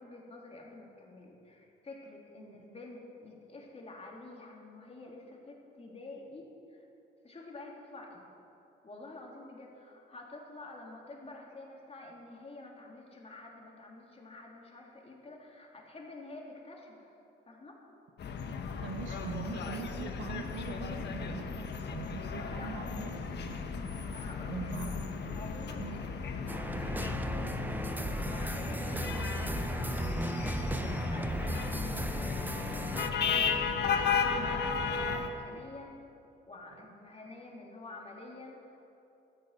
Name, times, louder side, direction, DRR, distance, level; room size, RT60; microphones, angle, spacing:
voice 1, 0.0-6.8 7.2-8.3 8.8-17.2 17.4-17.8 22.5-22.7 24.1-24.9 25.3-29.8 30.1-33.7 34.3-36.0 36.5-38.9, left 2 dB, 30° left, -1 dB, 3.4 m, -49 dB
sound 1, 18.2-35.3, left 5 dB, 60° left, 1.4 m, -35 dB
voice 2, 18.8-23.7 24.5-25.4 25.8-26.0 35.5-35.6, right 7 dB, 70° right, 4 dB, 1.1 m, -43 dB
sound 2, 26.5-33.1, right 1 dB, 10° right, 0.8 m, -35 dB
13.5 x 10.5 x 8.3 m, 2.8 s
cardioid pair, 90°, 20 cm